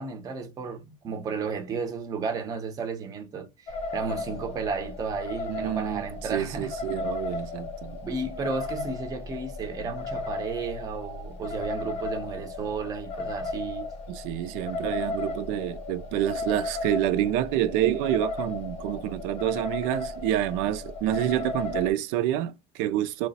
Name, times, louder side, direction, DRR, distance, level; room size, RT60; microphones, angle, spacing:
voice 1, 0.0-6.7 8.0-13.9, right 5 dB, 25° right, 0.6 m, -33 dB
sound 1, 3.7-21.9, left 3 dB, 45° left, 0.7 m, -35 dB
voice 2, 5.5-6.1 6.3-8.0 14.1-23.3, right 12 dB, 75° right, 0.4 m, -28 dB
3.1 x 2.0 x 4.0 m
cardioid pair, 155°, 15 cm